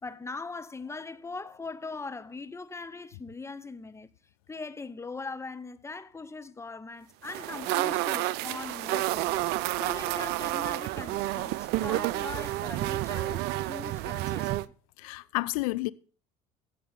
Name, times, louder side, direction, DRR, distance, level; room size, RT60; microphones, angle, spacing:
voice 1, 0.0-4.1 4.5-9.5 9.8-14.7, left 3 dB, 15° left, 1.0 m, -41 dB
sound 1, 7.2-14.6, right 16 dB, 65° right, 0.6 m, -30 dB
voice 2, 15.0-15.9, left 21 dB, 80° left, 0.5 m, -30 dB
16.0 x 7.7 x 4.0 m
hypercardioid pair, 70°, 18 cm